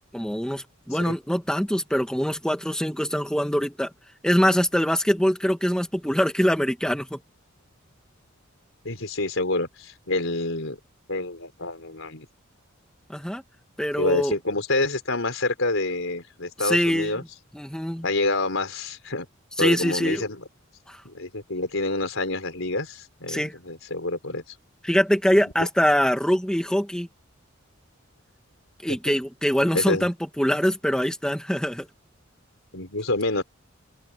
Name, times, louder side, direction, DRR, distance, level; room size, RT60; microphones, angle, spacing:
voice 1, 0.1-3.9 4.2-7.2 13.1-13.4 13.8-14.3 16.6-17.2 17.5-18.0 19.6-20.2 20.9-21.0 23.3-23.5 24.8-27.1 28.8-31.9, equal, 5° left, 2.2 m, -23 dB
voice 2, 8.8-10.8 11.1-12.3 14.0-17.2 18.0-19.3 19.6-20.4 21.0-24.4 28.9-29.0 29.7-30.1 32.7-33.4, left 2 dB, 70° left, 5.1 m, -27 dB
open air
head